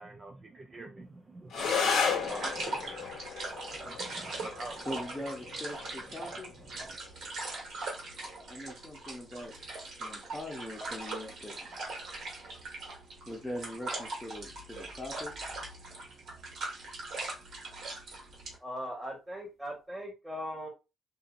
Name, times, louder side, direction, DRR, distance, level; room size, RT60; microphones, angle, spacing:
voice 1, 0.0-3.2 3.8-4.9, right 2 dB, 35° right, 0.4 m, -46 dB
sound 1, 1.5-10.5, left 6 dB, 70° left, 0.9 m, -36 dB
sound 2, 1.5-18.6, right 2 dB, 70° right, 1.4 m, -41 dB
voice 2, 4.8-6.5 8.5-9.6 10.0-11.7 13.3-15.3, left 1 dB, 15° left, 0.8 m, -41 dB
voice 3, 18.6-20.7, equal, 15° right, 1.5 m, -39 dB
2.7 x 2.7 x 2.6 m
cardioid pair, 90°, 0 cm